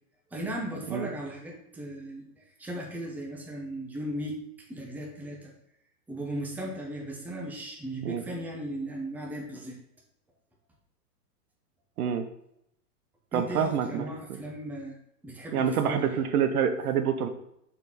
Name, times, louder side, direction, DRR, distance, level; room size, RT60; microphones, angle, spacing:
voice 1, 0.3-4.4 4.7-5.5 6.1-9.8 13.3-15.0 15.2-16.2, right 1 dB, 5° right, -2 dB, 0.9 m, -37 dB
voice 2, 13.3-14.0 15.5-17.3, right 8 dB, 65° right, 8 dB, 0.9 m, -27 dB
6.6 x 4.4 x 4.2 m, 0.77 s
hypercardioid pair, 140°, 48 cm